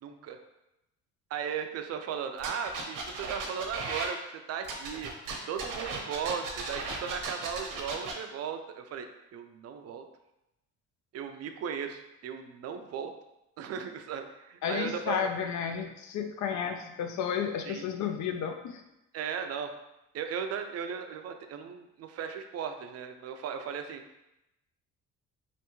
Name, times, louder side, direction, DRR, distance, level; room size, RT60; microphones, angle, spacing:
voice 1, 0.0-0.4 1.3-5.1 5.5-10.1 11.1-13.1 13.6-15.3 17.7-17.9 19.1-19.7 20.1-24.0, right 7 dB, 50° right, 6 dB, 0.4 m, -37 dB
sound 1, 2.4-4.1 4.6-8.1, right 3 dB, 80° right, 0.8 m, -36 dB
voice 2, 14.6-18.8, left 7 dB, 65° left, 6 dB, 0.5 m, -32 dB
3.4 x 2.6 x 3.0 m, 0.92 s
cardioid pair, 100°, 31 cm